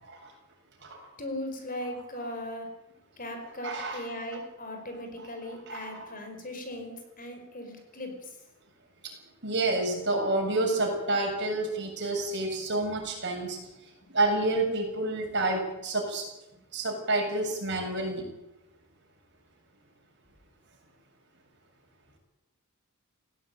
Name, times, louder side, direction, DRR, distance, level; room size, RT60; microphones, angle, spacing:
voice 1, 1.2-2.7 3.2-8.4, left 1 dB, 40° left, 5 dB, 5.0 m, -38 dB
voice 2, 3.6-4.1 5.7-6.1 9.0-9.1 9.4-13.6 14.1-16.2 16.7-18.2, right 2 dB, 55° right, 1 dB, 7.5 m, -29 dB
19.0 x 17.0 x 9.2 m, 0.92 s
head